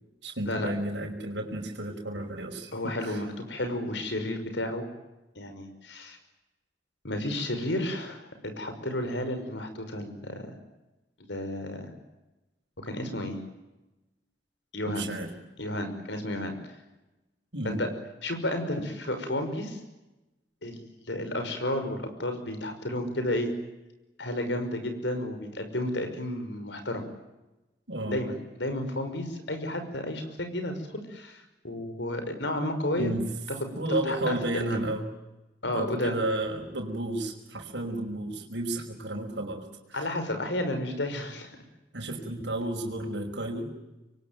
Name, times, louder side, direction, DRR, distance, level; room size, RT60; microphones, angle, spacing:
voice 1, 0.2-3.2 14.9-15.3 17.5-17.9 27.9-28.2 33.0-33.4 33.8-35.1 35.7-40.1 41.9-43.7, right 1 dB, 75° right, 1 dB, 5.4 m, -32 dB
voice 2, 2.7-4.9 5.4-6.2 7.0-10.5 11.3-11.9 12.8-13.4 14.7-15.1 15.6-16.5 17.6-17.9 18.2-19.8 20.6-20.8 21.1-23.5 24.2-27.0 28.1-30.7 31.1-33.1 33.9-34.4 34.7-34.8 35.6-36.2 39.9-41.6, left 1 dB, 75° left, 7 dB, 5.9 m, -32 dB
27.0 x 23.0 x 9.3 m, 1.0 s
head